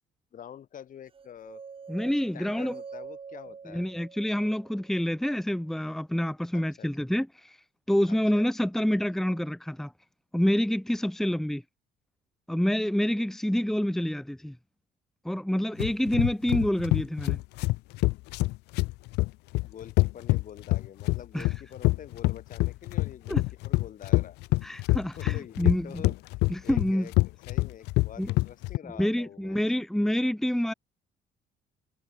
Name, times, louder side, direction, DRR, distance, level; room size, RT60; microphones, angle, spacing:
voice 1, 0.3-1.6 2.3-3.8 6.5-6.9 8.1-8.4 11.2-11.3 19.6-24.4 24.9-26.1 26.6-27.1 27.5-29.6, left 9 dB, 50° left, 7.9 m, -46 dB
sound 1, 1.1-5.2, right 6 dB, 30° right, 3.0 m, -46 dB
voice 2, 1.9-2.8 3.7-7.6 7.9-9.9 10.3-11.6 12.5-14.6 15.2-17.4 21.3-21.5 23.3-23.4 24.6-26.0 26.5-27.1 28.2-28.3 29.0-30.7, equal, ahead, 1.3 m, -27 dB
sound 2, 15.8-28.8, left 22 dB, 90° left, 0.6 m, -26 dB
cardioid pair, 110°, 17 cm